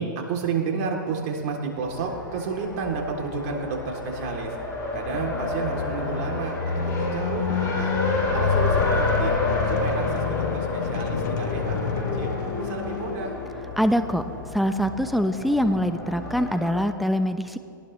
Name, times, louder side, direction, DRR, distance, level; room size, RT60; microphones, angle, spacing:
voice 1, 0.0-4.6 4.9-7.9 8.3-9.3 9.6-13.4, right 5 dB, 50° right, 1 dB, 3.3 m, -31 dB
Race car auto racing, 1.8-16.8, left 2 dB, 30° left, 5.1 m, -30 dB
sound 1, 4.9-13.7, left 7 dB, 60° left, 1.2 m, -28 dB
voice 2, 13.8-14.2 14.5-17.6, equal, ahead, 9 dB, 0.9 m, -23 dB
22.5 x 18.5 x 3.3 m, 2.4 s
hypercardioid pair, 115°, 11 cm